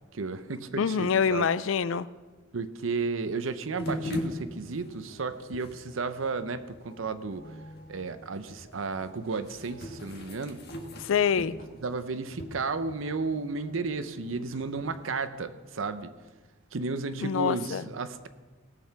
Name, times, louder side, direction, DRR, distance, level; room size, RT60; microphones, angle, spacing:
voice 1, 0.1-1.5 2.5-7.5 7.9-10.6 11.8-16.1 16.7-18.3, right 4 dB, 85° right, 12 dB, 0.7 m, -33 dB
voice 2, 0.8-2.1 11.0-11.6 17.2-17.9, left 6 dB, 80° left, 17 dB, 0.4 m, -26 dB
sound 1, 3.8-15.1, left 1 dB, 55° left, 1.5 m, -42 dB
17.5 x 6.6 x 5.9 m, 1.3 s
head